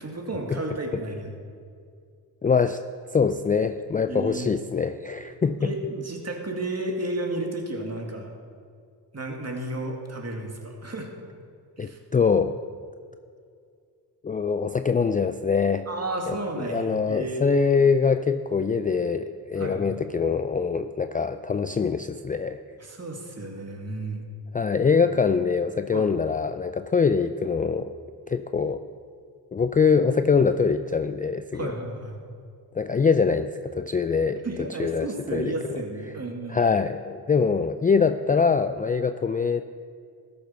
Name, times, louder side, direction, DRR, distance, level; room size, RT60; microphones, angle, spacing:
voice 1, 0.0-1.4 4.1-4.5 5.6-8.3 9.1-11.1 11.8-12.0 15.9-17.4 19.6-20.0 22.8-24.2 25.9-26.1 31.5-32.2 34.4-36.6, right 2 dB, 35° right, 1 dB, 2.3 m, -32 dB
voice 2, 2.4-2.8 3.1-5.7 11.8-12.6 14.2-15.9 16.3-22.6 24.5-27.9 28.3-28.8 29.5-31.7 32.7-34.4 34.8-35.5 36.5-39.6, left 5 dB, 20° left, 10 dB, 0.4 m, -23 dB
13.5 x 6.9 x 5.7 m, 2.3 s
supercardioid pair, 50°, 43 cm